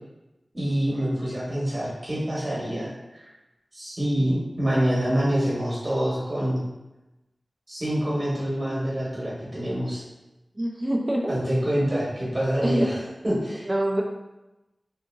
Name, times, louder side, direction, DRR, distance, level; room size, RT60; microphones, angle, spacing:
voice 1, 0.5-3.3 3.7-6.6 7.7-10.0 11.3-13.0 13.2-13.7, equal, 45° right, -7 dB, 1.1 m, -26 dB
voice 2, 10.6-11.3 12.6-12.9 13.7-14.0, right 1 dB, 25° right, -1 dB, 0.4 m, -24 dB
2.7 x 2.7 x 2.5 m, 0.99 s
wide cardioid pair, 75°, 0 cm